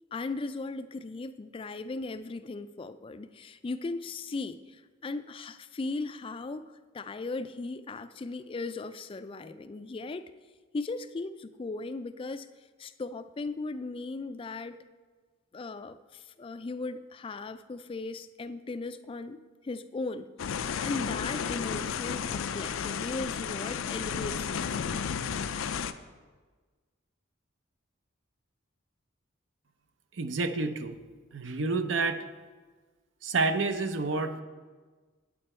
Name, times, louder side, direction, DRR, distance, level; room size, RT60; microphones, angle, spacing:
voice 1, 0.1-10.3 10.7-12.5 12.8-14.8 15.5-19.4 19.6-20.3 20.8-25.0, left 3 dB, 25° left, 12 dB, 0.3 m, -37 dB
sound 1, 20.4-25.9, left 7 dB, 90° left, 0.4 m, -33 dB
voice 2, 30.2-31.0 31.3-32.2 33.2-34.4, right 3 dB, 65° right, 9 dB, 0.6 m, -29 dB
8.9 x 8.6 x 4.3 m, 1.4 s
head